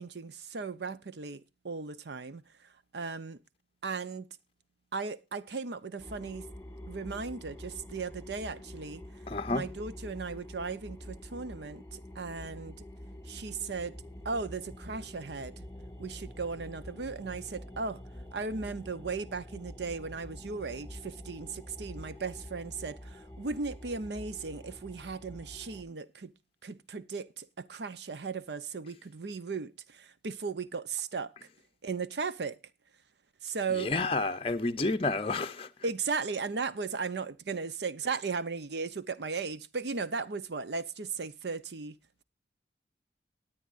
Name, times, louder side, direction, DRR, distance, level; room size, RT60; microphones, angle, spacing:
voice 1, 0.0-3.4 3.8-4.3 4.9-6.5 6.9-9.0 9.5-12.8 13.2-14.0 14.2-15.7 16.0-18.0 18.3-26.3 26.6-31.3 31.8-32.6 33.4-33.9 35.8-42.0, right 4 dB, 75° right, 0.7 m, -36 dB
sound 1, 6.0-25.8, left 1 dB, 10° left, 1.8 m, -46 dB
voice 2, 9.3-9.7 33.8-35.7, left 3 dB, 30° left, 0.6 m, -30 dB
19.5 x 8.7 x 2.5 m
head